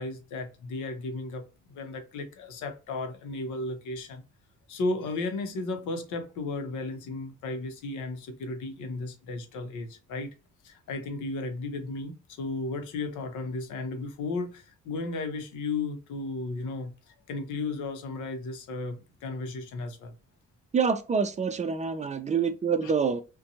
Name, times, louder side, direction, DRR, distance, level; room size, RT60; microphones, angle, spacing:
voice 1, 0.0-4.2 4.7-10.3 10.6-20.1 22.8-22.9, left 3 dB, 80° left, 0.7 m, -34 dB
voice 2, 20.7-23.2, right 5 dB, 25° right, 0.4 m, -26 dB
2.6 x 2.2 x 2.7 m
cardioid pair, 90°, 30 cm